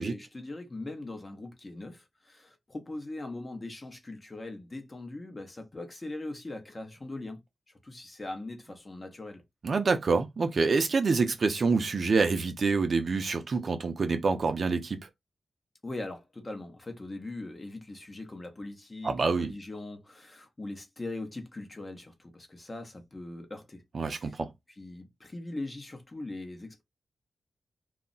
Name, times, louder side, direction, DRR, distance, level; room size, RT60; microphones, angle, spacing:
voice 1, 0.0-7.4 7.8-9.4 15.8-24.4 24.7-26.8, left 2 dB, 25° left, 0.7 m, -41 dB
voice 2, 9.6-15.0 19.0-19.5 23.9-24.5, right 4 dB, 55° right, 0.5 m, -26 dB
2.3 x 2.0 x 3.8 m
wide cardioid pair, 110°, 0 cm